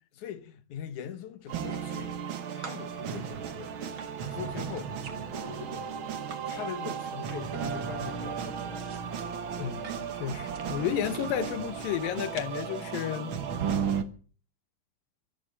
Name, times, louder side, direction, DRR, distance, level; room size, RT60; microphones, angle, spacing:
voice 1, 0.1-2.2 2.5-3.8 4.2-8.9 9.5-10.1, left 9 dB, 65° left, 2.5 m, -42 dB
sound 1, 1.4-2.3 2.6-6.4 6.7-7.6 7.9-11.3 12.0-12.7, right 6 dB, 45° right, 2.1 m, -49 dB
sound 2, 1.5-14.0, right 7 dB, 60° right, 1.3 m, -35 dB
voice 2, 9.6-13.4, left 10 dB, 85° left, 2.8 m, -32 dB
15.0 x 13.0 x 7.2 m
omnidirectional pair, 3.9 m